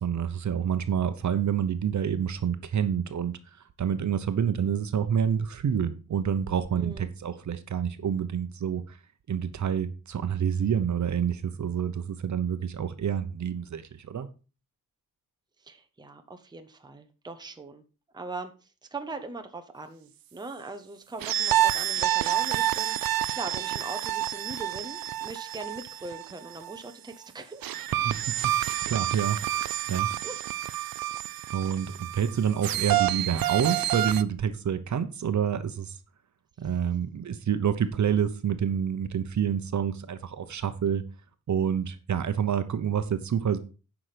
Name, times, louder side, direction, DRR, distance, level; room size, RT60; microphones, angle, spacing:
voice 1, 0.0-3.3 3.8-9.0 9.3-14.3 27.9-30.1 31.5-36.0 36.6-41.0 41.5-43.6, right 8 dB, 55° right, 10 dB, 1.0 m, -28 dB
voice 2, 6.8-7.1 15.6-17.8 18.1-18.5 18.9-27.7 30.2-30.4, right 3 dB, 10° right, 6 dB, 0.9 m, -40 dB
sound 1, 21.2-26.8 27.6-34.2, right 13 dB, 80° right, 0.6 m, -28 dB
10.0 x 6.0 x 5.1 m, 0.34 s
wide cardioid pair, 165°, 35 cm